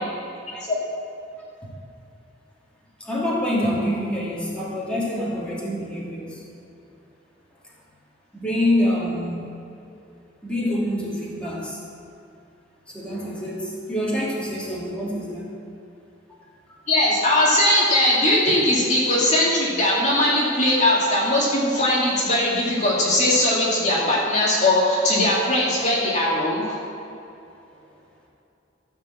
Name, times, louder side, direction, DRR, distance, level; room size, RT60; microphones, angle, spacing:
voice 1, 3.0-6.4 8.3-9.5 10.4-11.8 12.9-15.5, left 1 dB, 5° left, -7 dB, 2.7 m, -26 dB
voice 2, 16.9-26.8, left 1 dB, 40° left, -5 dB, 2.2 m, -20 dB
14.0 x 5.4 x 7.8 m, 2.7 s
head